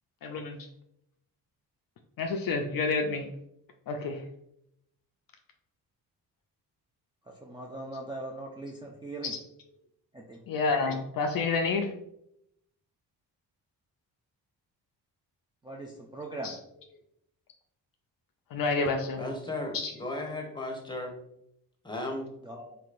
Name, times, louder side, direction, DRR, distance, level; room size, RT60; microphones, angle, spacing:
voice 1, 0.2-0.6 2.2-3.3 3.9-4.2 10.5-11.9 16.4-16.6 18.5-19.2 19.7-19.9, left 4 dB, 50° left, 4 dB, 0.5 m, -29 dB
voice 2, 7.3-9.3 10.1-10.4 15.6-16.6 22.4-22.8, right 2 dB, 10° right, -1 dB, 0.4 m, -40 dB
voice 3, 19.2-21.1 21.8-22.2, left 2 dB, 10° left, 3 dB, 0.8 m, -35 dB
3.0 x 2.8 x 2.5 m, 0.77 s
hypercardioid pair, 45°, 46 cm